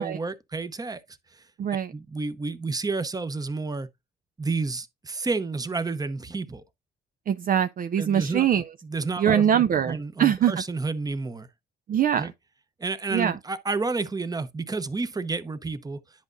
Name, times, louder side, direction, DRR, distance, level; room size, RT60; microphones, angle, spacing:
voice 1, 0.0-1.4 1.9-3.9 4.4-6.6 8.0-8.5 8.8-9.4 9.9-11.5 12.2-12.3 12.8-16.0, right 3 dB, 20° right, 0.8 m, -30 dB
voice 2, 1.6-1.9 7.3-8.6 9.2-10.5 11.9-12.3 13.1-13.3, right 9 dB, 45° right, 0.4 m, -23 dB
10.5 x 5.0 x 2.6 m
cardioid pair, 90°, 20 cm